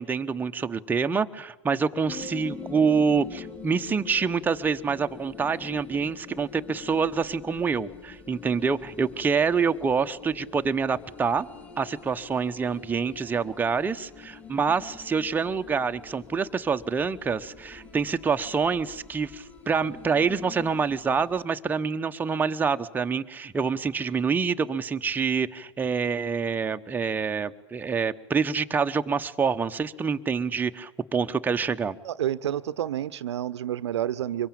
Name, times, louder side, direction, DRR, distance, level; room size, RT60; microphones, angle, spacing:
voice 1, 0.0-11.5 11.8-31.9, right 5 dB, 10° right, 7 dB, 1.0 m, -26 dB
sound 1, 2.1-21.4, left 5 dB, 10° left, 2.9 m, -45 dB
voice 2, 32.0-34.5, right 11 dB, 65° right, 17 dB, 0.8 m, -29 dB
25.0 x 22.5 x 8.8 m, 0.98 s
hypercardioid pair, 110°, 15 cm